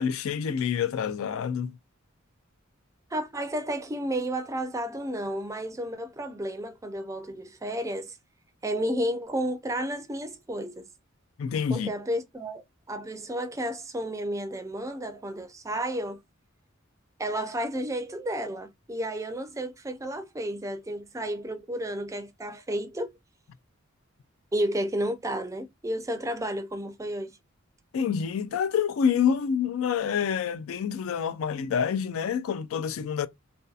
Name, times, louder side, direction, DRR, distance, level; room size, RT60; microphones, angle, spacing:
voice 1, 0.0-1.8 11.4-11.9 27.9-33.3, left 7 dB, 80° left, 0.3 m, -27 dB
voice 2, 3.1-8.2 8.6-10.9 11.7-16.2 17.2-23.1 24.5-27.3, right 1 dB, 15° right, 0.4 m, -32 dB
2.7 x 2.3 x 2.2 m
head